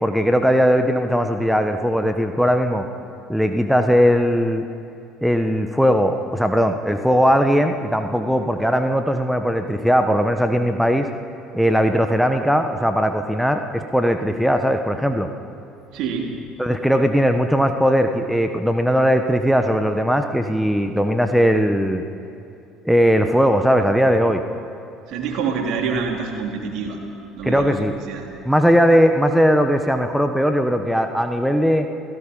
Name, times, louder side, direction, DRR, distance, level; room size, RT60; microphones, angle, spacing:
voice 1, 0.0-2.8 3.3-4.7 5.2-11.1 11.5-15.3 16.6-22.0 22.8-24.4 27.4-27.9 28.4-31.9, equal, ahead, 7 dB, 1.4 m, -19 dB
voice 2, 15.9-16.3 25.1-27.0 27.4-27.8 28.1-28.3, right 5 dB, 60° right, 2 dB, 3.4 m, -26 dB
30.0 x 17.5 x 5.5 m, 2.8 s
figure-of-eight pair, 60°, 0 cm